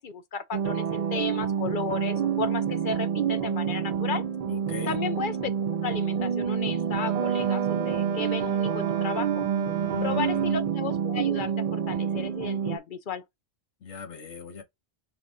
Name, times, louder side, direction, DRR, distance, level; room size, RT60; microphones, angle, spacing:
voice 1, 0.0-4.2 4.9-9.5 10.0-13.2, left 6 dB, 55° left, 0.7 m, -34 dB
sound 1, 0.5-12.8, right 7 dB, 60° right, 0.4 m, -28 dB
voice 2, 4.5-4.9 9.8-10.7 13.8-14.6, left 6 dB, 85° left, 1.4 m, -39 dB
Wind instrument woodwind instrument, 6.9-10.8, right 12 dB, 75° right, 0.8 m, -33 dB
5.7 x 2.6 x 3.5 m
omnidirectional pair, 1.1 m